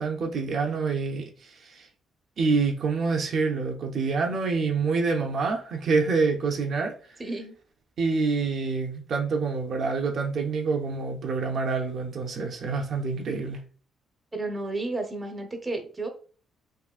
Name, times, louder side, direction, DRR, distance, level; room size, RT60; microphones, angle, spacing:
voice 1, 0.0-1.9 2.4-6.9 8.0-13.6, right 4 dB, 60° right, 0.6 m, -27 dB
voice 2, 7.2-7.5 14.3-16.1, right 2 dB, 20° right, 0.7 m, -32 dB
3.7 x 2.6 x 2.4 m
cardioid pair, 90°, 0 cm